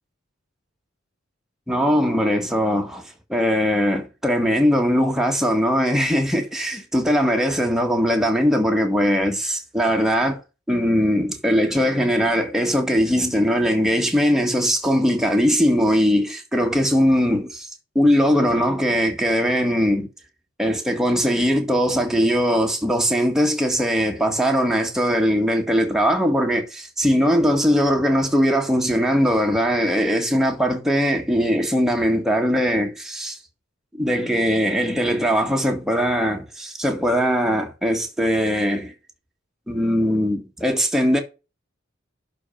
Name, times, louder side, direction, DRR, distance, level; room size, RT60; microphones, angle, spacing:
voice 1, 1.7-10.4 10.7-17.7 17.9-20.1 20.6-33.4 34.0-38.9 39.7-41.2, equal, ahead, 1.7 m, -20 dB
11.0 x 4.4 x 5.2 m
head